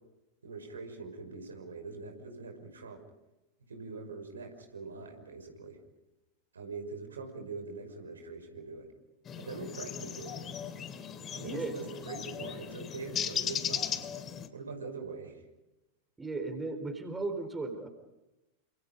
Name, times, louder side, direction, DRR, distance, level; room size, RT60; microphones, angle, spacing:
voice 1, 0.4-3.0 3.7-5.8 6.5-8.9 9.4-10.4 11.3-14.0 14.5-15.4, right 4 dB, 70° right, 4 dB, 5.8 m, -43 dB
sound 1, 9.3-14.5, left 8 dB, 25° left, 2.6 m, -37 dB
voice 2, 11.4-11.8 16.2-17.9, right 3 dB, 15° right, 7 dB, 4.3 m, -36 dB
29.5 x 27.5 x 5.4 m, 0.98 s
figure-of-eight pair, 90°, 0 cm